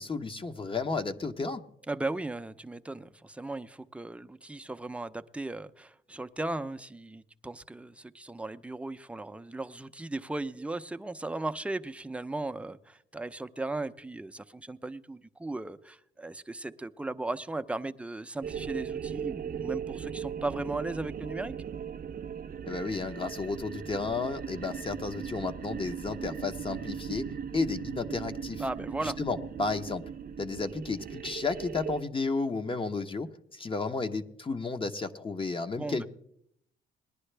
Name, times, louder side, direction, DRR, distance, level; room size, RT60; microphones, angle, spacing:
voice 1, 0.0-1.6 22.7-27.2 27.5-28.6 29.0-30.0 30.4-36.1, left 4 dB, 25° left, 7 dB, 0.9 m, -32 dB
voice 2, 1.9-21.5 28.6-29.2 35.8-36.1, right 2 dB, 5° right, 9 dB, 0.6 m, -37 dB
sound 1, 18.4-32.0, right 7 dB, 50° right, 0.7 m, -38 dB
19.5 x 11.0 x 3.3 m, 0.71 s
cardioid pair, 90°, 20 cm